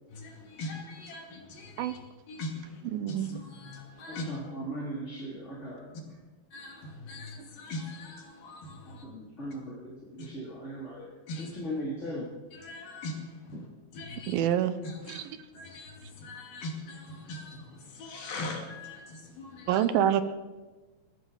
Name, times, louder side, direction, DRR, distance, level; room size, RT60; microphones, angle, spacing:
voice 1, 0.1-2.0 2.3-2.8 3.1-4.3 6.5-9.1 10.2-10.3 11.3-11.5 12.5-13.7 13.9-14.3 14.8-15.3 15.5-19.9, left 2 dB, 65° left, 0 dB, 4.2 m, -41 dB
voice 2, 2.9-3.3 14.3-14.8 15.1-15.2 19.7-20.2, right 10 dB, 75° right, 12 dB, 2.3 m, -26 dB
voice 3, 4.1-5.9 8.9-12.3 13.5-13.6, equal, 20° left, -5 dB, 2.7 m, -38 dB
22.5 x 14.5 x 4.0 m, 1.3 s
omnidirectional pair, 4.7 m